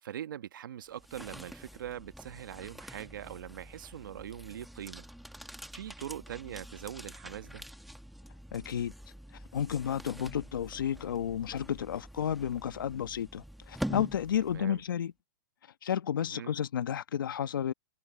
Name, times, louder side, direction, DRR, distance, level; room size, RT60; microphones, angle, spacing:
voice 1, 0.0-5.0 5.7-7.6 14.5-14.8 16.2-16.6, right 10 dB, 75° right, 1.3 m, -42 dB
sound 1, 0.8-14.9, equal, ahead, 1.6 m, -46 dB
voice 2, 8.5-8.9 9.5-15.1 15.8-17.7, left 9 dB, 80° left, 1.3 m, -32 dB
hypercardioid pair, 145°, 11 cm